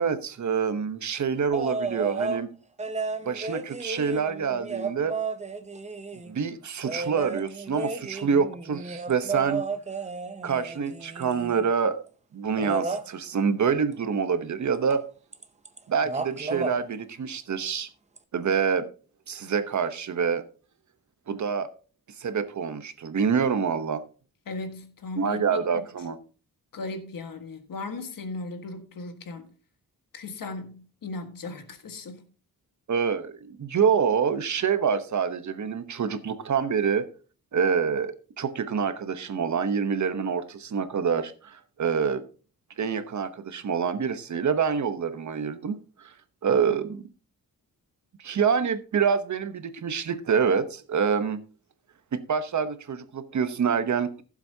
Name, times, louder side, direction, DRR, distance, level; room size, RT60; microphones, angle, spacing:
voice 1, 0.0-2.5 3.2-5.1 6.3-9.6 10.4-12.0 12.3-15.0 15.9-17.9 18.3-18.9 19.3-20.4 21.3-21.7 22.2-24.0 25.2-26.2 32.9-37.1 37.5-42.2 42.8-45.8 46.0-46.1 46.4-47.0 48.2-51.4 52.1-54.2, right 6 dB, 55° right, 1.0 m, -26 dB
sound 1, 1.5-2.4 2.8-6.3 6.8-11.7 12.6-13.1 14.9-15.0 15.3-15.8 16.0-16.8 18.2-18.3, right 4 dB, 20° right, 0.7 m, -33 dB
voice 2, 24.5-25.8 26.7-29.5 30.1-32.3, left 3 dB, 65° left, 1.6 m, -37 dB
15.5 x 7.5 x 2.8 m
wide cardioid pair, 145°, 36 cm